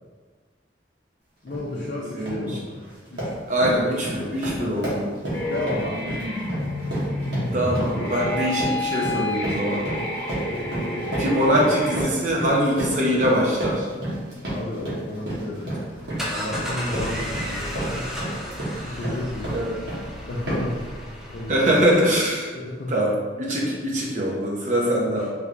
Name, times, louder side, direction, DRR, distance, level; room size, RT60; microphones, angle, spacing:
voice 1, 1.4-2.8 3.1-3.3 4.0-4.7 5.5-6.2 10.4-10.6 14.4-15.9 16.3-18.1 18.7-19.6 20.2-20.9 21.3-21.8 22.5-22.9, left 2 dB, 55° left, -4 dB, 0.4 m, -32 dB
sound 1, 1.5-1.7 2.1-2.5 2.8-20.1 20.5-20.8, right 1 dB, 70° right, 1.2 m, -31 dB
voice 2, 2.1-2.6 3.5-5.2 7.5-9.8 11.2-13.9 18.7-18.9 19.5-19.7 21.5-22.5 22.9-25.3, equal, 40° right, -3 dB, 0.7 m, -23 dB
sound 2, 5.3-12.0, left 1 dB, 15° left, 1.5 m, -29 dB
sound 3, 15.9-22.3, equal, 5° right, 0.5 m, -34 dB
3.4 x 3.1 x 2.5 m, 1.4 s
head